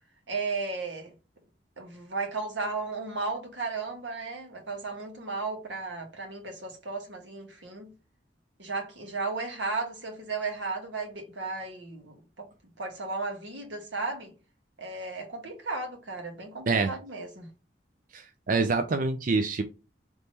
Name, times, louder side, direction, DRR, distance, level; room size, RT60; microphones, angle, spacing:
voice 1, 0.3-1.1 1.8-7.9 8.6-12.5 12.8-14.3 14.8-17.5, right 3 dB, 90° right, 1.6 m, -35 dB
voice 2, 18.1-19.6, right 4 dB, 50° right, 0.5 m, -26 dB
3.5 x 3.1 x 4.1 m
head